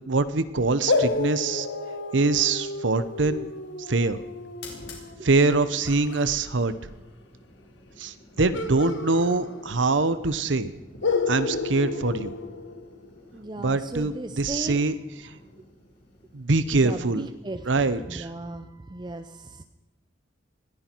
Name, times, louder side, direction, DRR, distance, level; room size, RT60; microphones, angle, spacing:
voice 1, 0.0-1.7 2.1-3.5 3.9-4.2 5.2-6.7 8.0-10.7 11.3-12.3 13.6-14.9 15.2-15.3 16.3-17.3 17.7-18.3, right 3 dB, 80° right, 13 dB, 0.9 m, -24 dB
sound 1, 0.9-6.3 8.5-10.0 10.3-10.4 11.0-13.2, left 3 dB, 85° left, 1.5 m, -31 dB
sound 2, 2.8-18.1, left 2 dB, 60° left, 4.5 m, -52 dB
voice 2, 13.3-14.8 16.7-19.6, right 2 dB, 25° right, 9 dB, 0.6 m, -36 dB
20.0 x 15.0 x 4.6 m, 1.0 s
head